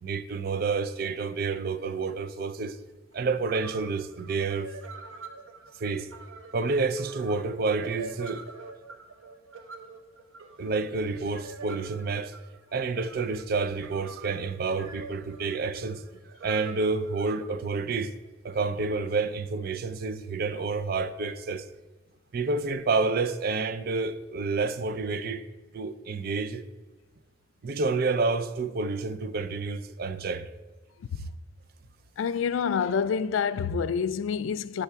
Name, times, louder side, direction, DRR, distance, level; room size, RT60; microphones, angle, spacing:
voice 1, 0.0-2.8 3.1-4.7 5.8-6.1 6.5-8.5 10.6-12.3 12.7-18.1 18.4-21.7 22.3-25.4 25.7-26.6 27.6-30.5, right 4 dB, 50° right, 0.4 m, -29 dB
sound 1, 3.1-3.2 3.5-17.4, right 4 dB, 85° right, 0.7 m, -45 dB
voice 2, 32.2-34.8, left 6 dB, 80° left, 0.3 m, -27 dB
9.7 x 3.5 x 5.6 m
head